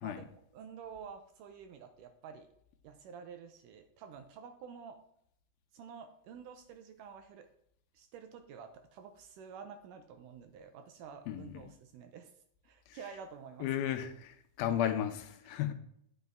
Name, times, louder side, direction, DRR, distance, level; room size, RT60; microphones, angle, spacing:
voice 1, 0.0-2.5 2.8-5.0 5.7-7.5 7.9-12.3 12.6-13.7 15.4-15.6, right 6 dB, 80° right, 8 dB, 2.0 m, -50 dB
voice 2, 11.3-11.6 12.9-13.0 13.6-15.7, left 10 dB, 85° left, 8 dB, 2.6 m, -34 dB
9.1 x 8.4 x 3.5 m, 0.71 s
omnidirectional pair, 4.2 m